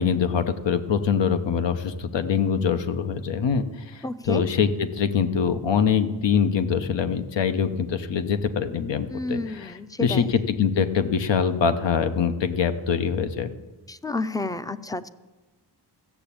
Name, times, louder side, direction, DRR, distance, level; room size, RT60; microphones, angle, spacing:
voice 1, 0.0-3.6 3.9-13.5, left 7 dB, 80° left, 9 dB, 1.0 m, -24 dB
voice 2, 4.0-4.4 9.1-10.3 13.9-15.1, left 2 dB, 10° left, 14 dB, 0.3 m, -30 dB
14.0 x 7.0 x 8.6 m, 1.2 s
wide cardioid pair, 140°, 43 cm